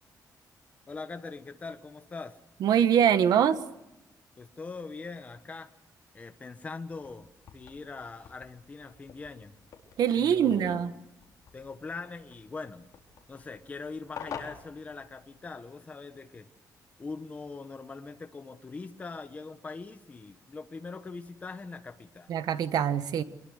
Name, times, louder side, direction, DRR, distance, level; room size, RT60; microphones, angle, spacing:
voice 1, 0.9-2.4 4.4-5.7 6.1-9.5 10.2-11.0 11.5-12.9 13.3-16.5 17.0-22.3, left 4 dB, 20° left, 8 dB, 1.2 m, -42 dB
voice 2, 2.6-3.6 10.0-10.9 22.3-23.2, right 9 dB, 70° right, 11 dB, 1.5 m, -23 dB
sound 1, 6.9-15.6, left 7 dB, 55° left, 4.3 m, -49 dB
25.0 x 22.0 x 6.6 m, 0.91 s
wide cardioid pair, 175°, 7 cm